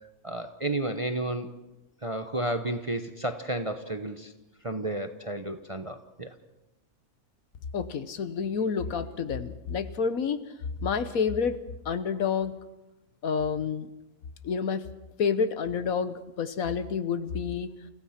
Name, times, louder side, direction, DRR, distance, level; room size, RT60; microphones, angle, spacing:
voice 1, 0.2-1.5 2.0-4.3 4.6-6.3, right 1 dB, 25° right, 8 dB, 0.8 m, -32 dB
voice 2, 7.7-10.4 10.8-11.6 11.8-12.5 13.2-13.9 14.4-14.9 15.2-17.7, left 6 dB, 70° left, 12 dB, 1.4 m, -29 dB
29.5 x 15.5 x 5.9 m, 0.98 s
omnidirectional pair, 1.6 m